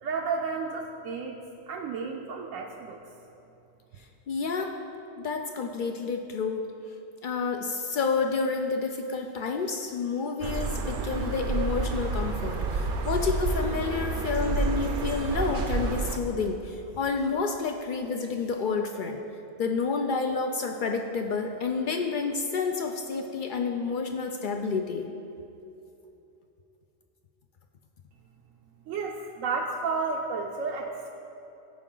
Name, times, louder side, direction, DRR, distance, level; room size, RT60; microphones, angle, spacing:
voice 1, 0.0-1.4 1.7-3.1 28.9-31.1, right 4 dB, 80° right, 0 dB, 1.0 m, -32 dB
voice 2, 4.3-4.7 5.2-6.7 7.2-19.2 19.6-25.1, left 4 dB, 70° left, 4 dB, 0.4 m, -29 dB
sound 1, 10.4-16.2, right 3 dB, 55° right, 0.7 m, -29 dB
14.5 x 4.9 x 3.8 m, 2.8 s
omnidirectional pair, 1.4 m